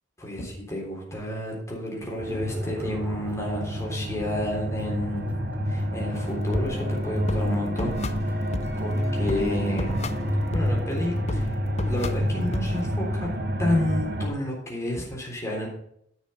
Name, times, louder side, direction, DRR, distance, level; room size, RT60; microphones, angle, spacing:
voice 1, 0.2-5.4 5.7-7.9 8.2-8.4 8.8-10.0 10.5-13.3 13.6-15.7, left 1 dB, 15° left, -2 dB, 3.5 m, -31 dB
sound 1, 2.2-14.3, equal, 55° right, 1.4 m, -28 dB
sound 2, 2.3-10.6, right 1 dB, 10° right, 0.9 m, -42 dB
sound 3, 6.1-12.8, left 2 dB, 35° left, 0.6 m, -35 dB
10.0 x 6.3 x 5.5 m, 0.72 s
head